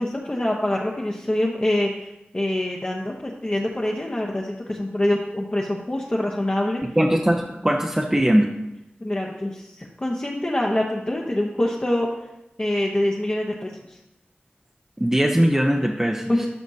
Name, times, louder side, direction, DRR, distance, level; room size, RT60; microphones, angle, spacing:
voice 1, 0.0-2.1 2.3-6.8 9.0-12.1 12.6-14.0 16.3-16.5, left 1 dB, 30° left, -2 dB, 0.9 m, -25 dB
voice 2, 7.0-8.5 15.0-16.5, equal, 15° right, 0 dB, 0.7 m, -20 dB
12.5 x 6.0 x 2.7 m, 0.89 s
wide cardioid pair, 75°, 4 cm